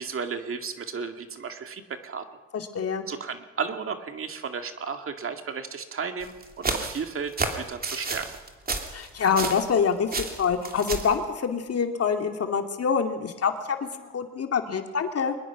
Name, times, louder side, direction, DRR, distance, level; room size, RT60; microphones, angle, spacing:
voice 1, 0.0-2.2 3.1-8.2, right 5 dB, 45° right, 6 dB, 2.2 m, -34 dB
voice 2, 2.5-3.1 8.9-10.1 10.4-15.3, left 6 dB, 50° left, 5 dB, 2.5 m, -26 dB
sound 1, 6.2-9.8 10.1-11.2, right 3 dB, 30° right, 2.9 m, -31 dB
23.0 x 21.0 x 6.0 m, 1.2 s
cardioid pair, 90°, 30 cm